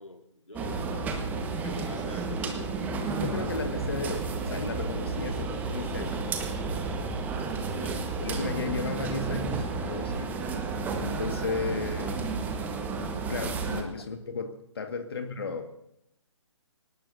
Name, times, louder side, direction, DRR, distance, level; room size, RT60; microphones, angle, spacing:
voice 1, 0.0-2.7 7.7-8.0, left 1 dB, 85° left, 5 dB, 2.1 m, -44 dB
sound 1, 0.5-13.8, right 4 dB, 10° right, 1.3 m, -32 dB
voice 2, 3.2-6.5 8.2-10.3 11.0-12.2 13.3-15.6, left 4 dB, 50° left, 6 dB, 1.8 m, -34 dB
24.0 x 19.0 x 2.7 m, 0.78 s
figure-of-eight pair, 135°, 16 cm